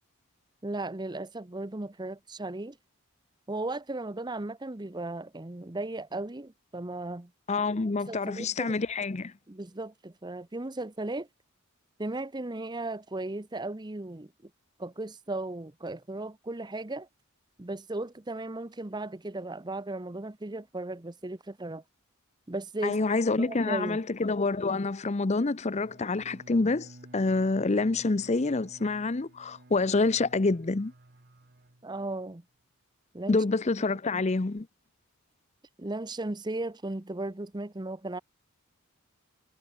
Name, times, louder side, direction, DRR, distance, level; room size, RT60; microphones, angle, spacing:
voice 1, 0.6-2.8 3.5-7.3 8.1-8.8 9.5-11.3 12.0-14.3 14.8-17.1 17.6-21.8 22.5-23.0 23.4-24.0 31.8-32.4 33.1-33.4 34.1-34.2 35.8-38.2, right 2 dB, 20° right, 0.8 m, -36 dB
voice 2, 7.5-9.3 22.8-30.9 33.3-34.7, left 3 dB, 30° left, 0.6 m, -27 dB
Bowed string instrument, 25.7-32.3, right 1 dB, 45° right, 1.4 m, -53 dB
head